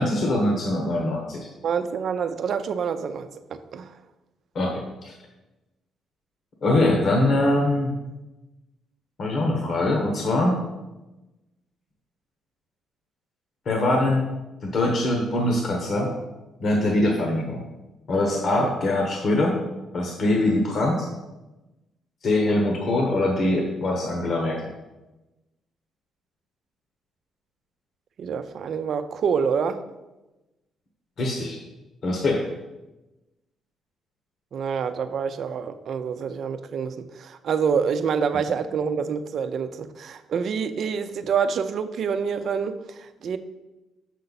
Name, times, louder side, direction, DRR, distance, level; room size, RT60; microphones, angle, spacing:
voice 1, 0.0-1.5 4.5-5.1 6.6-7.9 9.2-10.6 13.6-14.3 14.6-16.2 16.6-17.6 18.1-19.6 19.9-21.1 22.2-24.6 31.2-31.6 32.0-32.5, left 1 dB, 55° left, 1 dB, 1.2 m, -23 dB
voice 2, 1.6-3.9 18.6-18.7 28.2-29.8 34.5-43.4, right 6 dB, 60° right, 10 dB, 0.5 m, -27 dB
6.6 x 6.5 x 4.1 m, 1.0 s
cardioid pair, 90°, 0 cm